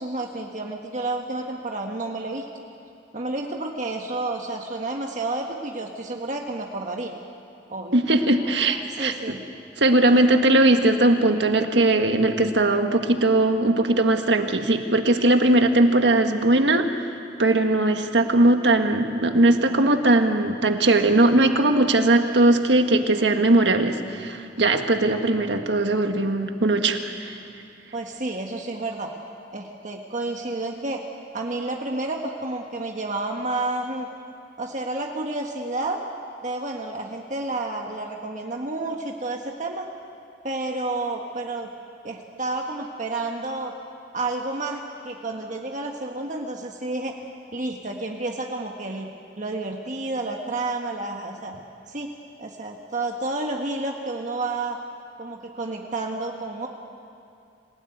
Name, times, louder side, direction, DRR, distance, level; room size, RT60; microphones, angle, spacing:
voice 1, 0.0-2.4 3.1-7.1 7.7-8.0 8.4-9.4 10.0-10.3 27.9-29.1 29.5-31.0 31.3-34.1 34.6-36.0 36.4-39.8 40.4-41.7 42.0-43.7 44.1-47.1 47.5-49.1 49.4-51.6 51.9-52.1 52.4-54.8 55.2-56.7, right 2 dB, 45° right, 1 dB, 1.6 m, -30 dB
voice 2, 7.9-9.4 9.8-16.9 17.4-27.3, right 2 dB, 75° right, 6 dB, 1.7 m, -19 dB
27.0 x 17.5 x 9.4 m, 2.5 s
head